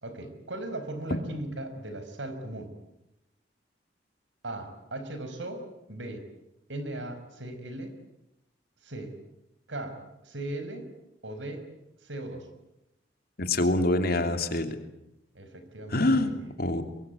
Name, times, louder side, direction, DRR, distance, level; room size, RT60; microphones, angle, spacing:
voice 1, 0.0-2.7 4.4-5.6 5.9-6.2 6.7-7.9 8.8-9.1 9.7-10.9 11.2-11.7 12.0-12.5 15.4-16.5 16.8-16.9, right 1 dB, 80° right, 8 dB, 5.1 m, -38 dB
voice 2, 13.4-14.8 15.9-16.3 16.6-16.8, left 2 dB, 55° left, 7 dB, 2.8 m, -25 dB
23.5 x 23.5 x 9.3 m, 0.88 s
head